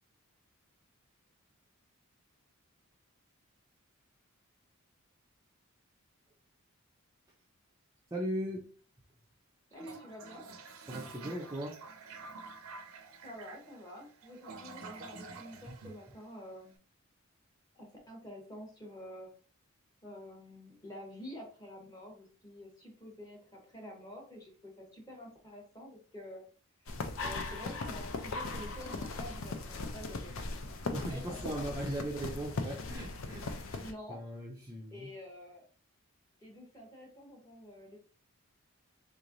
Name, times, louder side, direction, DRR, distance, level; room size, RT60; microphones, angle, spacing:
voice 1, 8.1-8.6 10.9-11.8 15.7-15.8 30.9-35.1, right 1 dB, 15° right, -2 dB, 0.4 m, -38 dB
voice 2, 9.7-10.4 13.2-16.8 17.7-19.3 20.0-26.4 27.2-31.7 33.8-34.2 34.9-35.7 36.4-38.0, left 1 dB, 15° left, 0 dB, 1.0 m, -48 dB
Toilet flush, 9.7-16.7, right 4 dB, 75° right, 0.5 m, -49 dB
sound 1, 26.9-33.9, left 3 dB, 65° left, 0.5 m, -39 dB
3.4 x 3.1 x 2.5 m, 0.39 s
head